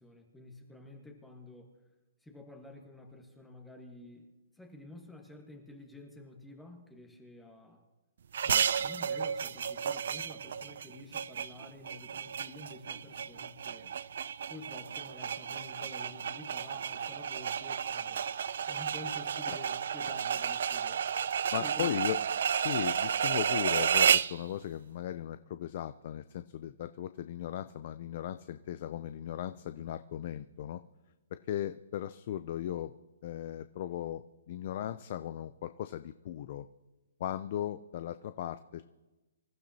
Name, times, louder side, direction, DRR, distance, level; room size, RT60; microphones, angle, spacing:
voice 1, 0.0-1.7 2.2-7.8 8.4-13.9 14.5-18.2 18.7-21.0 21.5-22.0, left 2 dB, 5° left, 2 dB, 1.3 m, -50 dB
sound 1, 8.3-24.4, right 7 dB, 60° right, 0.4 m, -32 dB
voice 2, 21.5-22.2 22.5-30.8 31.5-32.9 33.2-36.7 37.2-38.8, left 11 dB, 40° left, 11 dB, 0.5 m, -37 dB
26.0 x 13.5 x 2.8 m, 1.1 s
hypercardioid pair, 165°, 0 cm